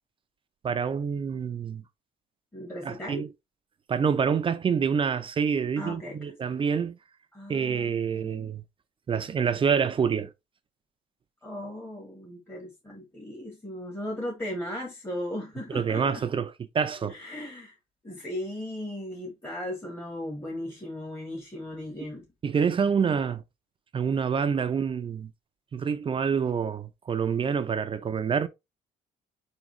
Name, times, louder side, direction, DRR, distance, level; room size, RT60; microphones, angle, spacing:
voice 1, 0.6-1.8 2.8-3.3 3.9-7.0 7.5-8.6 9.1-10.3 15.7-17.2 22.0-22.1 22.4-23.4 23.9-25.3 25.7-28.5, right 6 dB, 30° right, 0.5 m, -27 dB
voice 2, 2.5-3.2 5.8-6.7 7.3-8.5 11.4-16.2 17.0-17.7 18.0-22.2, left 1 dB, 15° left, 1.3 m, -37 dB
4.4 x 3.7 x 3.1 m
cardioid pair, 110°, 17 cm